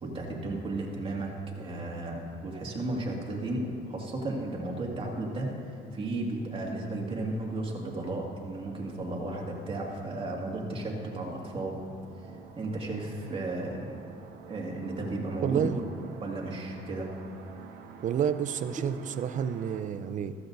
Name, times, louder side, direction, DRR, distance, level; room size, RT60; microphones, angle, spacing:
voice 1, 0.0-11.8 12.2-12.3 12.5-14.0 14.5-15.8 16.2-17.2 18.8-18.9, right 2 dB, 30° right, -1 dB, 2.2 m, -34 dB
sound 1, 3.5-19.8, right 5 dB, 75° right, 1.0 m, -50 dB
voice 2, 15.4-15.8 18.0-20.4, right 8 dB, 50° right, 12 dB, 0.6 m, -29 dB
14.5 x 14.0 x 2.7 m, 2.6 s
cardioid pair, 110°, 17 cm